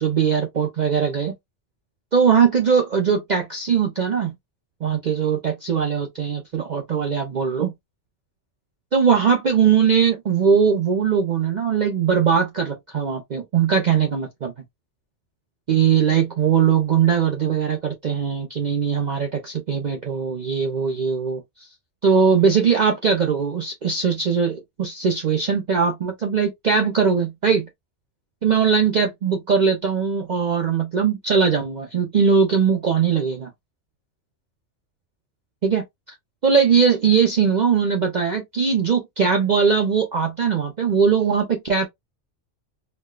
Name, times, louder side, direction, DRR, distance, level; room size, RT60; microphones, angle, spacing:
voice 1, 0.0-1.3 2.1-4.3 4.8-7.7 8.9-14.5 15.7-21.4 22.0-27.7 28.4-33.5 35.6-35.8 36.4-41.9, right 6 dB, 50° right, 0.6 m, -20 dB
4.3 x 2.2 x 2.2 m
omnidirectional pair, 1.3 m